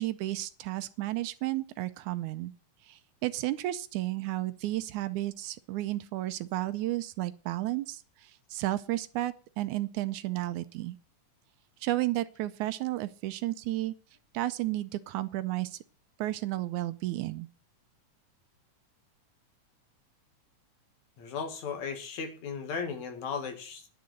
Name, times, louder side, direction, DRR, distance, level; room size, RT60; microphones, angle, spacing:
voice 1, 0.0-2.5 2.9-11.0 11.8-13.9 14.3-15.8 16.2-17.5, right 16 dB, 80° right, 2.0 m, -32 dB
voice 2, 21.2-23.9, left 5 dB, 65° left, 2.9 m, -36 dB
10.5 x 6.8 x 7.6 m
omnidirectional pair, 3.6 m